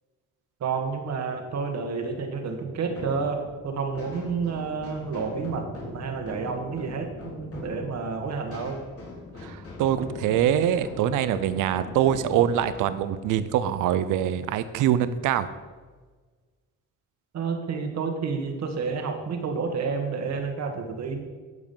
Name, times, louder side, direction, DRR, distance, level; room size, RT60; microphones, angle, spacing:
voice 1, 0.6-8.8 17.3-21.2, right 5 dB, 60° right, 5 dB, 1.7 m, -30 dB
sound 1, 2.8-14.2, left 3 dB, 50° left, 3.3 m, -42 dB
voice 2, 9.4-15.5, right 10 dB, 90° right, 13 dB, 0.6 m, -24 dB
12.0 x 5.0 x 5.5 m, 1.4 s
cardioid pair, 90°, 30 cm